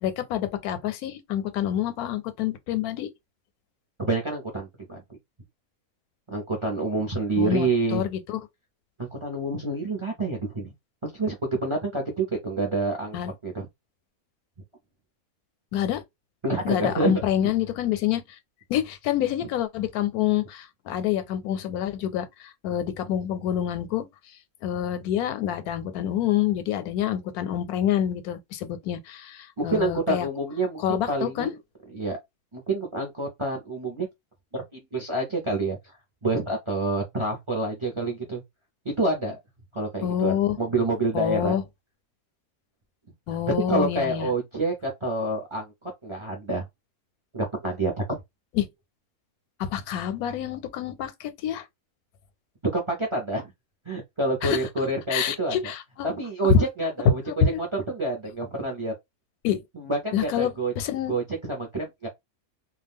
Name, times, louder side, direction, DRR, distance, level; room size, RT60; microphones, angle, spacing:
voice 1, 0.0-3.1 7.4-8.4 13.1-13.3 15.7-16.0 16.6-18.2 18.7-24.1 24.6-30.3 30.8-31.5 40.0-40.6 41.1-41.6 43.3-44.3 48.5-48.7 49.6-51.7 54.4-54.6 55.1-56.1 56.5-56.6 57.3-57.6 59.4-59.6 60.1-61.1, left 10 dB, 90° left, 1.1 m, -27 dB
voice 2, 4.0-5.0 6.3-8.0 9.0-10.7 11.0-13.2 13.4-13.7 16.4-17.2 29.6-31.6 31.9-32.2 32.5-34.1 34.5-35.9 36.2-38.4 39.0-39.4 39.7-41.6 43.5-46.7 47.3-48.0 52.7-53.5 53.9-55.7 56.0-57.2 57.6-58.9 59.7-60.7 61.1-62.1, right 2 dB, 35° right, 0.5 m, -28 dB
2.4 x 2.3 x 3.4 m
omnidirectional pair, 1.5 m